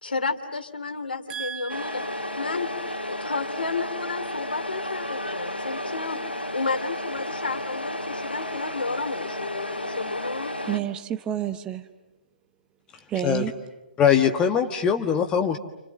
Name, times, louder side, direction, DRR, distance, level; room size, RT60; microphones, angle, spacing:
voice 1, 0.0-2.0 2.4-2.7 3.1-10.6, left 4 dB, 65° left, 6 dB, 2.9 m, -32 dB
voice 2, 1.3-2.2 10.7-11.8 13.1-13.5, right 10 dB, 15° right, 8 dB, 1.0 m, -30 dB
Truck, 1.7-10.8, left 1 dB, 85° left, 2.5 m, -32 dB
voice 3, 14.0-15.6, left 8 dB, 15° left, 5 dB, 1.5 m, -21 dB
29.5 x 29.0 x 6.5 m, 0.95 s
figure-of-eight pair, 130°, 6 cm